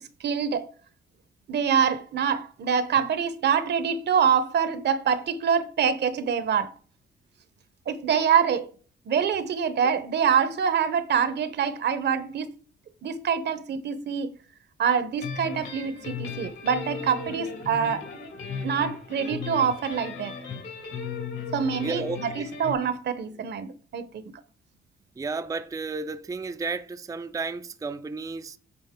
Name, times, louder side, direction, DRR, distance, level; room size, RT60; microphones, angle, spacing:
voice 1, 0.2-0.7 1.5-6.7 7.9-8.7 9.1-12.6 13.0-14.3 14.8-18.1 18.6-20.3 21.5-24.2, right 7 dB, 60° right, 0.9 m, -25 dB
sound 1, 15.2-22.7, left 5 dB, 75° left, 3.1 m, -36 dB
voice 2, 21.8-22.5 25.2-28.6, right 4 dB, 15° right, 0.4 m, -33 dB
9.0 x 3.9 x 3.6 m
cardioid pair, 90°, 20 cm